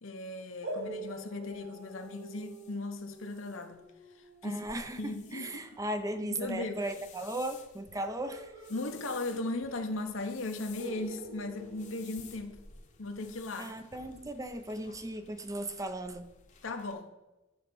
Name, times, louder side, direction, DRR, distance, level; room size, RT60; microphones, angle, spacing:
voice 1, 0.0-3.8 4.4-4.6 5.0-5.8 6.3-6.8 8.7-12.6 13.0-13.7 16.6-17.1, left 2 dB, 75° left, 6 dB, 1.1 m, -37 dB
sound 1, 0.6-6.1 8.3-9.8 10.0-10.1 10.8-13.0, right 1 dB, 75° right, 2.7 m, -46 dB
sound 2, 0.8-16.9, left 6 dB, 35° left, 1.0 m, -56 dB
voice 2, 4.4-8.5 13.6-16.3, right 1 dB, 15° right, 8 dB, 0.6 m, -37 dB
11.0 x 4.3 x 7.0 m, 1.0 s
head